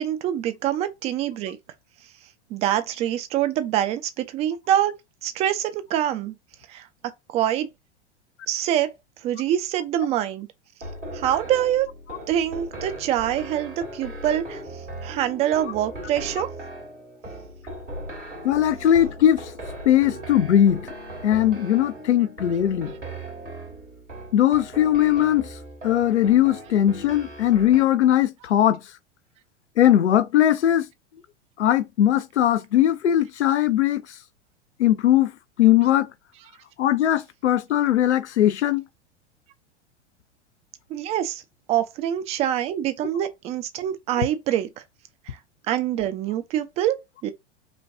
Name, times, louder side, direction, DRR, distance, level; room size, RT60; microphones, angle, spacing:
voice 1, 0.0-1.6 2.5-4.9 5.2-6.3 6.7-6.9 7.3-7.7 8.5-8.9 9.2-10.5 11.1-11.9 12.3-14.6 15.0-16.5 40.9-41.4 41.7-44.7 45.3-45.4 45.7-47.3, right 11 dB, 20° right, 0.3 m, -25 dB
sound 1, 10.8-27.8, right 1 dB, 90° right, 1.9 m, -38 dB
voice 2, 18.4-19.5 19.9-20.9 21.2-22.9 24.3-25.6 25.8-28.8 29.8-30.9 31.6-34.0 34.8-35.3 35.6-36.1 36.8-38.8, left 11 dB, 75° left, 0.5 m, -19 dB
5.2 x 2.2 x 2.5 m
figure-of-eight pair, 90°, 35 cm